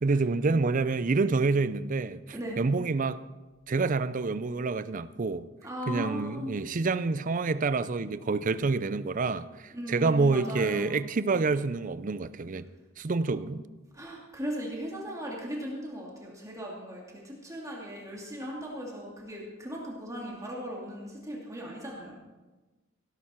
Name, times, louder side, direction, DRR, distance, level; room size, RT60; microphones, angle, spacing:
voice 1, 0.0-2.2 2.6-3.2 3.7-5.5 5.9-12.7 13.0-13.6, right 3 dB, 40° right, 0.5 m, -27 dB
voice 2, 5.6-6.6 9.7-11.1 13.3-13.5 13.9-22.1, equal, 15° right, 2.6 m, -38 dB
16.5 x 12.0 x 4.5 m
head